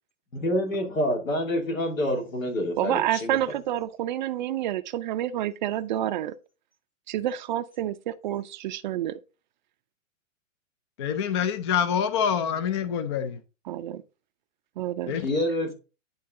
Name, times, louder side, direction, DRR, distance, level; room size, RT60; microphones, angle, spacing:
voice 1, 0.3-3.6 15.1-15.7, left 1 dB, 85° left, 2.8 m, -27 dB
voice 2, 2.8-6.3 7.1-9.2 13.7-14.0 14.8-15.2, right 12 dB, 35° right, 0.4 m, -29 dB
voice 3, 11.0-13.4 15.1-15.3, left 8 dB, 25° left, 0.3 m, -26 dB
10.5 x 3.9 x 3.7 m
hypercardioid pair, 125°, 40 cm